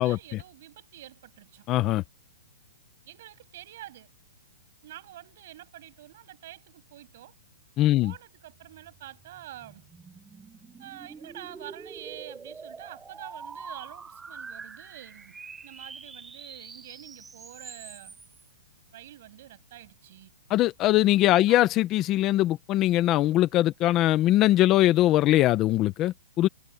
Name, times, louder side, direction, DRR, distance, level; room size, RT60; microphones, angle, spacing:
voice 1, 0.0-1.7 3.0-4.1 4.8-7.3 8.0-9.9 10.8-15.4 15.6-18.2 18.9-20.3 21.5-21.6, right 14 dB, 45° right, 7.9 m, -47 dB
voice 2, 1.7-2.0 7.8-8.1 20.5-26.5, left 15 dB, 20° left, 0.8 m, -21 dB
sound 1, 8.7-18.4, right 5 dB, 5° right, 3.2 m, -45 dB
hypercardioid pair, 170°, 0 cm